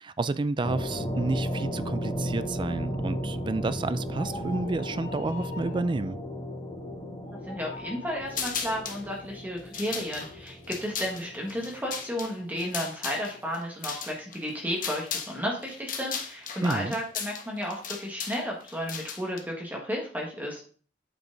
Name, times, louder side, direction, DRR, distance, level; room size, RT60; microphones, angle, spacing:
voice 1, 0.0-6.2 16.6-17.0, right 3 dB, 25° right, 0.4 m, -30 dB
sound 1, 0.6-12.5, equal, 25° left, 2.2 m, -35 dB
sound 2, 4.1-5.9 7.2-8.2, left 2 dB, 70° left, 2.3 m, -43 dB
voice 2, 7.5-20.6, equal, 10° right, 1.7 m, -33 dB
sound 3, 8.3-9.0 9.6-15.4 15.6-19.4, left 7 dB, 50° left, 1.2 m, -36 dB
8.7 x 5.0 x 3.9 m
head